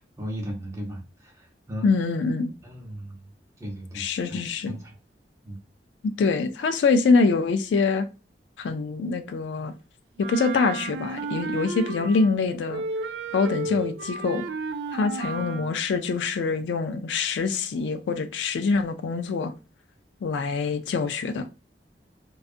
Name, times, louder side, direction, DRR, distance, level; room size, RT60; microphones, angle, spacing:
voice 1, 0.0-1.9 2.6-3.3 3.6-5.0 5.4-5.6 13.6-13.8 15.3-15.7, equal, 15° right, 0.6 m, -37 dB
voice 2, 1.8-2.5 4.0-4.7 6.0-8.1 8.6-9.7 10.2-12.8 13.3-14.5 14.9-19.5 20.2-21.5, left 4 dB, 90° left, 0.3 m, -24 dB
Wind instrument woodwind instrument, 10.2-12.4 12.7-15.8, right 3 dB, 70° right, 0.3 m, -33 dB
2.5 x 2.3 x 2.5 m
head